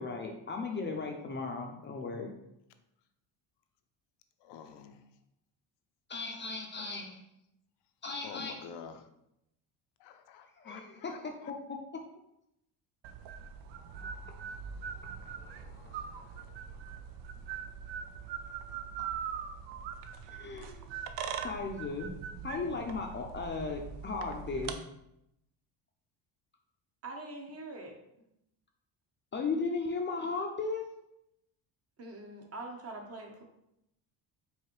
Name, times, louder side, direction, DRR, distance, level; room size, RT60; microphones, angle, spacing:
voice 1, 0.0-2.3 6.1-7.2 8.0-8.5 10.6-11.5 15.4-16.6 18.7-19.1 20.3-20.9 21.4-22.1 22.4-24.7 29.3-30.8, left 4 dB, 25° left, 2 dB, 0.5 m, -37 dB
voice 2, 4.4-5.0 8.2-9.1 10.0-11.5, left 7 dB, 75° left, 7 dB, 0.6 m, -48 dB
sound 1, 13.0-24.7, right 7 dB, 75° right, 0.5 m, -42 dB
voice 3, 27.0-28.0 32.0-33.4, right 2 dB, 35° right, 2 dB, 0.9 m, -43 dB
4.8 x 2.7 x 3.0 m, 0.82 s
cardioid pair, 100°, 43 cm